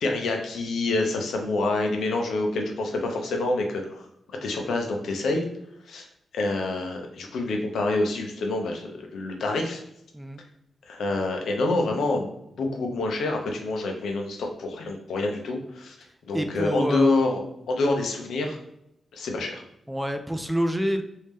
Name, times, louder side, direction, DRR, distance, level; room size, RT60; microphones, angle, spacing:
voice 1, 0.0-4.1 4.4-5.4 5.9-6.1 6.3-9.8 10.9-12.3 12.6-15.9 16.3-17.4 17.7-18.6 19.1-19.6, left 2 dB, 85° left, 2 dB, 0.7 m, -27 dB
voice 2, 16.3-17.1 19.9-21.0, equal, 5° right, 6 dB, 0.3 m, -27 dB
3.2 x 2.7 x 3.4 m, 0.78 s
wide cardioid pair, 105°, 0 cm